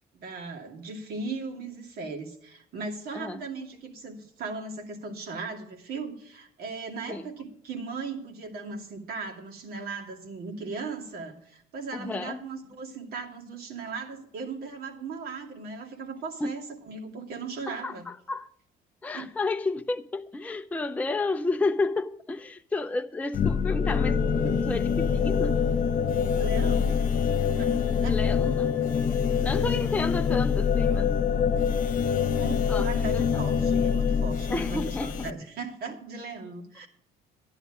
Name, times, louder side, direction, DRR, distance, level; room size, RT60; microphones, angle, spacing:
voice 1, 0.1-18.1 19.1-19.3 26.3-27.0 27.6-28.2 32.3-36.9, right 4 dB, 65° right, 2.5 m, -38 dB
voice 2, 11.9-12.4 16.4-16.5 17.7-18.5 19.0-25.6 28.1-28.8 29.4-31.2 32.7-33.4 34.5-35.3, left 3 dB, 10° left, 0.5 m, -31 dB
sound 1, 23.3-35.3, left 6 dB, 50° left, 1.1 m, -25 dB
11.0 x 10.5 x 4.9 m
cardioid pair, 110°, 17 cm